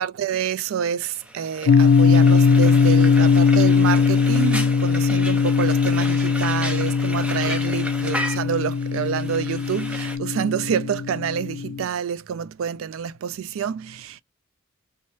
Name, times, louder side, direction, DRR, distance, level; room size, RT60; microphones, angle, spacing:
voice 1, 0.0-14.2, right 7 dB, 80° right, 0.3 m, -27 dB
Frying (food), 1.0-10.2, equal, 5° right, 0.6 m, -34 dB
sound 1, 1.7-11.8, left 5 dB, 80° left, 0.3 m, -19 dB
3.4 x 2.9 x 3.1 m
head